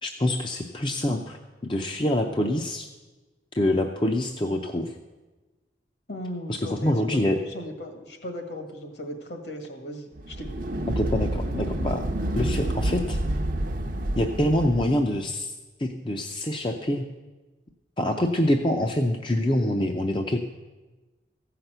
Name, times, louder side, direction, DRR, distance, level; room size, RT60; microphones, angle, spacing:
voice 1, 0.0-1.4 1.6-2.9 3.5-4.9 6.5-7.4 11.0-12.1 12.4-13.2 14.2-15.5 15.8-17.1 18.0-20.4, left 1 dB, 25° left, 3 dB, 0.6 m, -25 dB
voice 2, 6.1-10.6, equal, 65° left, 4 dB, 1.8 m, -37 dB
sound 1, 10.2-15.0, right 1 dB, 45° right, 0.7 m, -28 dB
14.5 x 5.8 x 7.9 m, 1.2 s
head